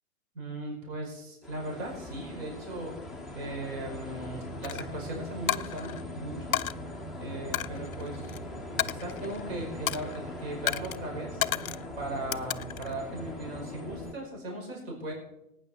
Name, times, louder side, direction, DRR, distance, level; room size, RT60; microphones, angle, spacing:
voice 1, 0.3-3.0 3.4-6.6 7.2-8.3 8.8-11.4 11.9-15.1, right 1 dB, 45° right, 0 dB, 5.4 m, -38 dB
sound 1, 1.4-14.1, left 1 dB, ahead, 1.0 m, -41 dB
Coin (dropping), 4.6-4.8 5.5-6.0 6.5-6.7 7.5-8.4 8.8-9.5 9.9-10.2 10.7-11.0 11.4-11.9 12.3-12.9, left 12 dB, 70° left, 0.6 m, -32 dB
18.0 x 9.4 x 4.3 m, 0.86 s
hypercardioid pair, 130°, 43 cm